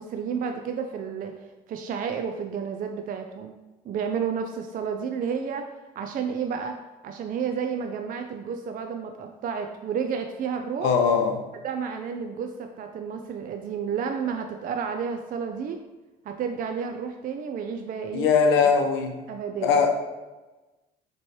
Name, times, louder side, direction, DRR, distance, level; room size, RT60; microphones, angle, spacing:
voice 1, 0.0-1.3 1.7-3.5 3.9-6.8 7.0-10.9 11.6-15.8 16.3-18.3 18.6-18.7 19.3-19.8, right 6 dB, 45° right, 5 dB, 0.4 m, -31 dB
voice 2, 10.8-11.4 18.1-19.2 19.6-19.9, left 5 dB, 75° left, 4 dB, 0.6 m, -20 dB
4.3 x 3.0 x 3.0 m, 1.1 s
supercardioid pair, 70°, 21 cm